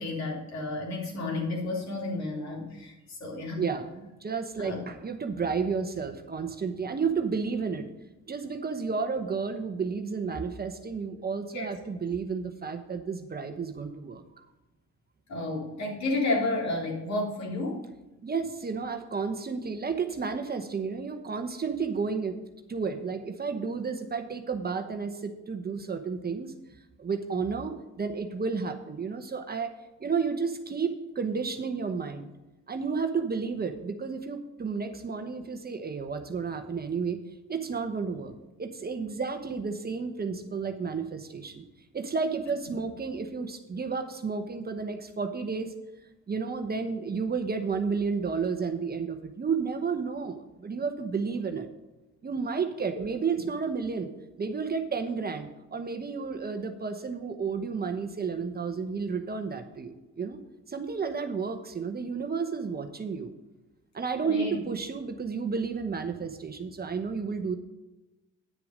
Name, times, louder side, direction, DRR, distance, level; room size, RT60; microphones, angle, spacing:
voice 1, 0.0-3.6 4.6-4.8 11.5-11.7 15.3-17.8 64.2-64.6, left 2 dB, 65° left, -2 dB, 3.5 m, -31 dB
voice 2, 3.6-7.9 8.3-14.5 18.2-22.4 22.7-26.5 27.0-29.7 30.0-32.3 32.7-37.2 37.5-41.6 41.9-45.7 46.3-51.7 52.2-54.1 54.4-60.4 60.7-63.3 63.9-67.5, right 5 dB, 30° right, 7 dB, 1.0 m, -32 dB
9.6 x 6.8 x 5.2 m, 1.0 s
cardioid pair, 90°, 30 cm